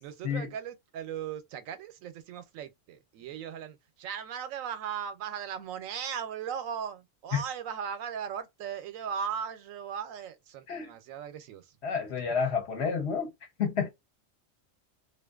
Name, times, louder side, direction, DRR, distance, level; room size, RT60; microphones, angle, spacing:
voice 1, 0.0-11.7, right 8 dB, 85° right, 1.0 m, -38 dB
voice 2, 11.8-13.3 13.6-13.9, left 6 dB, 60° left, 0.9 m, -30 dB
2.5 x 2.4 x 2.3 m
omnidirectional pair, 1.3 m